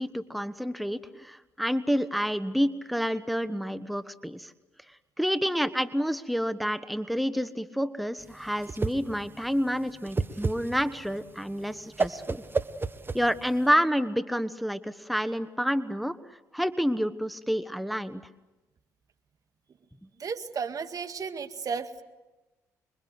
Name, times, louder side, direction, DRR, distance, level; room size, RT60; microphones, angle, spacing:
voice 1, 0.0-4.5 5.2-12.4 13.1-16.2 16.5-18.2, equal, ahead, 12 dB, 1.2 m, -29 dB
Whoosh swoosh swish, 8.2-13.7, right 3 dB, 30° right, 1.3 m, -32 dB
voice 2, 20.2-22.0, right 6 dB, 50° right, 9 dB, 1.9 m, -34 dB
27.0 x 23.0 x 8.0 m, 1.1 s
supercardioid pair, 55°, 8 cm